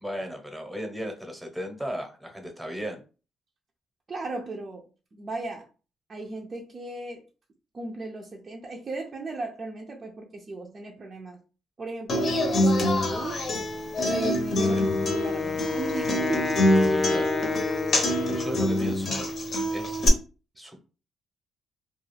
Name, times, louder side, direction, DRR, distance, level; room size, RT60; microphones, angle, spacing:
voice 1, 0.0-3.0 14.6-14.8 16.9-17.3 17.9-19.3 19.7-20.0 20.6-20.8, equal, 5° right, 3 dB, 0.8 m, -36 dB
voice 2, 4.1-4.9 5.1-5.7 6.1-7.2 7.7-11.4 11.8-13.4 14.1-16.6, right 3 dB, 40° right, 0 dB, 0.5 m, -36 dB
Human voice / Acoustic guitar, 12.1-20.1, left 1 dB, 55° left, 0.7 m, -25 dB
Wind instrument woodwind instrument, 14.6-18.8, left 4 dB, 30° left, 0.4 m, -29 dB
2.4 x 2.3 x 3.2 m, 0.34 s
cardioid pair, 90°, 0 cm